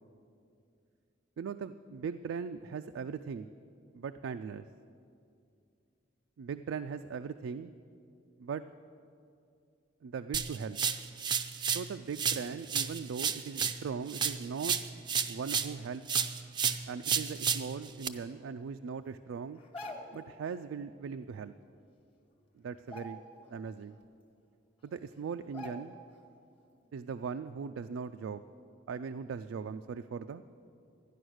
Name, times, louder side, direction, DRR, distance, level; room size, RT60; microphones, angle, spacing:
voice 1, 1.4-3.5 3.9-4.7 6.4-7.7 8.4-8.6 10.0-10.8 11.7-14.8 15.3-16.1 16.9-19.6 20.1-21.5 22.6-23.2 23.5-24.0 24.8-25.9 26.9-28.4 28.9-30.4, right 6 dB, 90° right, 9 dB, 0.3 m, -39 dB
sound 1, 10.3-11.9 12.2-15.8 16.1-18.1, right 7 dB, 25° right, 0.4 m, -32 dB
sound 2, 19.6-20.3 21.7-21.8 22.2-22.4 22.8-23.6 24.0-24.1 24.9-25.0 25.5-26.2 26.5-26.7, left 1 dB, 30° left, 1.3 m, -46 dB
13.0 x 10.0 x 6.3 m, 2.5 s
head